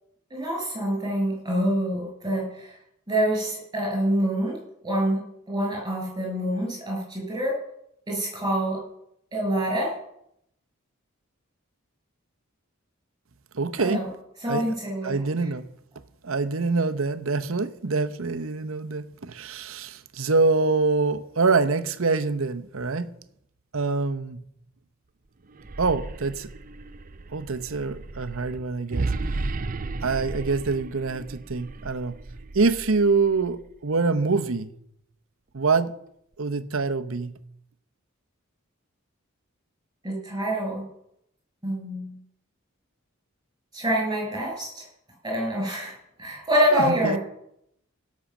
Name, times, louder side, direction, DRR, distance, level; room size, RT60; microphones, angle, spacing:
voice 1, 0.3-2.7 3.1-4.6 4.8-7.6 8.1-8.8 9.3-9.9 13.8-14.1 14.4-15.2 40.0-40.9 41.6-42.2 43.7-44.8 45.2-47.2, equal, 15° right, 6.4 m, -26 dB
voice 2, 13.5-14.1 14.5-14.7 15.0-15.7 16.2-23.1 23.7-24.4 25.8-26.5 27.3-29.1 30.0-32.2 32.5-34.7 35.5-35.9 36.4-37.4 46.7-47.2, right 4 dB, 70° right, 0.8 m, -25 dB
sound 1, 25.5-33.6, right 3 dB, 40° right, 0.6 m, -34 dB
17.0 x 6.4 x 7.2 m
head